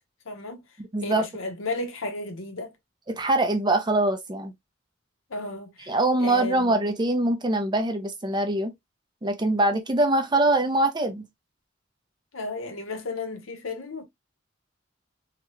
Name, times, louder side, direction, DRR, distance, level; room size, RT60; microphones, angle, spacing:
voice 1, 0.3-0.6 1.0-2.7 5.3-6.7 12.3-14.0, left 2 dB, 80° left, 0.9 m, -34 dB
voice 2, 0.8-1.3 3.1-4.5 5.9-8.7 9.2-11.3, right 2 dB, 20° right, 0.5 m, -23 dB
2.9 x 2.3 x 2.9 m
head